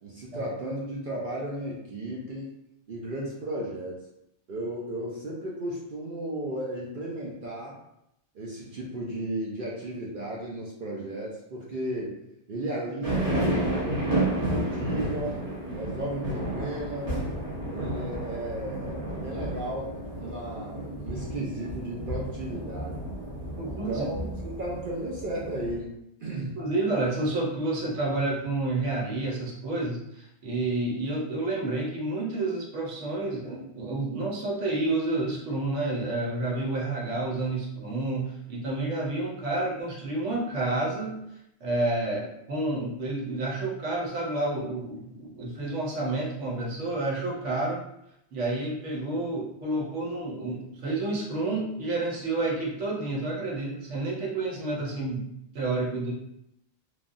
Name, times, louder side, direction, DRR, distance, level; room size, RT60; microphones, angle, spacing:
voice 1, 0.0-2.5 2.9-4.1 4.5-7.8 8.3-12.2 12.5-15.5 15.7-17.2 17.7-23.0 23.7-25.9 26.2-26.6, right 1 dB, 55° right, -4 dB, 0.6 m, -34 dB
sound 1, 13.0-25.8, right 1 dB, 35° right, 1.1 m, -31 dB
voice 2, 23.6-24.3 26.6-41.2 41.6-47.8 48.3-56.1, right 2 dB, 85° right, -3 dB, 1.1 m, -30 dB
3.2 x 2.2 x 2.5 m, 0.81 s
omnidirectional pair, 1.2 m